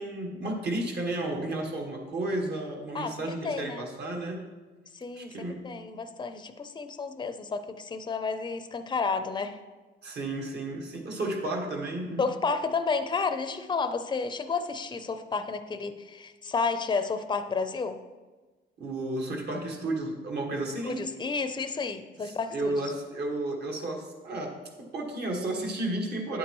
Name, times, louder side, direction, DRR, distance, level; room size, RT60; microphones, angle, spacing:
voice 1, 0.0-4.4 5.1-5.7 10.0-12.2 18.8-21.0 22.2-26.4, right 2 dB, 55° right, 1 dB, 1.7 m, -32 dB
voice 2, 2.9-3.9 4.9-9.6 12.2-18.0 20.8-22.9, left 4 dB, 20° left, 9 dB, 0.5 m, -31 dB
9.7 x 8.3 x 3.1 m, 1.3 s
cardioid pair, 90°, 20 cm